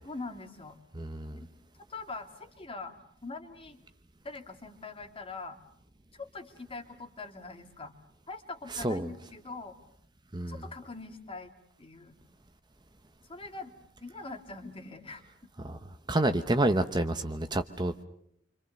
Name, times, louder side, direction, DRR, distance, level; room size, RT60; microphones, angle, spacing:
voice 1, 0.0-0.8 1.3-1.5 1.9-3.0 3.2-3.8 4.2-5.6 6.1-7.9 8.3-9.8 10.5-11.5 11.8-12.1 13.3-15.5, left 3 dB, 25° left, 6 dB, 2.4 m, -43 dB
voice 2, 1.0-1.4 8.8-9.1 10.3-10.5 15.6-15.8 16.1-18.0, right 1 dB, 20° right, 8 dB, 1.0 m, -28 dB
27.5 x 26.0 x 6.6 m, 0.70 s
head